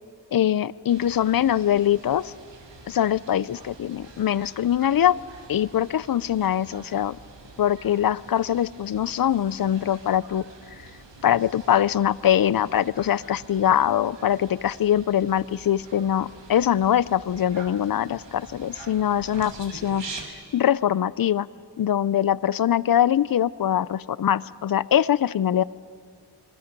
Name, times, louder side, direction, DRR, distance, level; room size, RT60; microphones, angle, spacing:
voice 1, 0.3-2.3 2.9-5.2 5.5-7.2 7.6-10.5 11.2-20.0 20.5-21.5 21.8-25.6, left 10 dB, 55° left, 19 dB, 0.5 m, -23 dB
sound 1, 0.9-20.2, right 3 dB, 85° right, 2.4 m, -45 dB
27.0 x 23.5 x 5.3 m, 2.1 s
wide cardioid pair, 130°, 42 cm